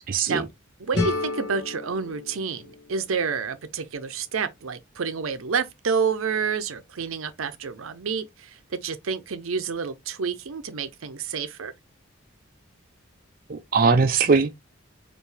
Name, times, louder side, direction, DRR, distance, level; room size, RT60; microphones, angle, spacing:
voice 1, 0.1-0.4 13.5-14.6, right 4 dB, 45° right, 0.4 m, -20 dB
voice 2, 0.8-11.7, right 5 dB, 85° right, 0.6 m, -29 dB
sound 1, 0.9-3.8, left 2 dB, 50° left, 1.1 m, -32 dB
4.5 x 2.6 x 3.3 m
head